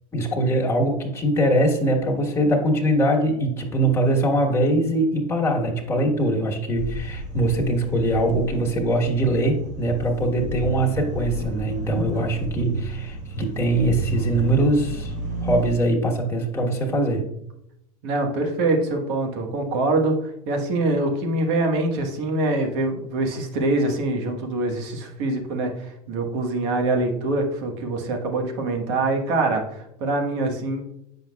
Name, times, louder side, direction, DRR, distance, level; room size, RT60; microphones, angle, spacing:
voice 1, 0.1-15.1 15.4-17.2, right 1 dB, 15° left, -1 dB, 1.4 m, -22 dB
sound 1, 6.8-15.7, right 3 dB, 45° right, 1.2 m, -32 dB
voice 2, 18.0-30.8, right 2 dB, 60° right, 2 dB, 1.4 m, -24 dB
7.5 x 5.4 x 2.3 m, 0.80 s
hypercardioid pair, 95°, 19 cm